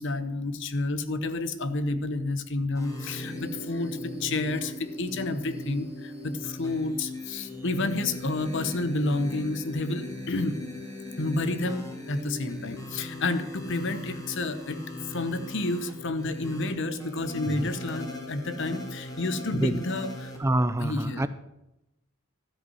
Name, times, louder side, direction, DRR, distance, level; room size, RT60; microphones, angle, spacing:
voice 1, 0.0-10.6 11.2-14.8 15.1-20.3 20.8-21.3, left 2 dB, 60° left, 11 dB, 0.9 m, -30 dB
sound 1, 2.7-20.4, left 1 dB, 15° left, 2.0 m, -39 dB
voice 2, 20.4-21.3, right 1 dB, 15° right, 13 dB, 0.3 m, -26 dB
12.5 x 5.4 x 7.7 m, 0.91 s
head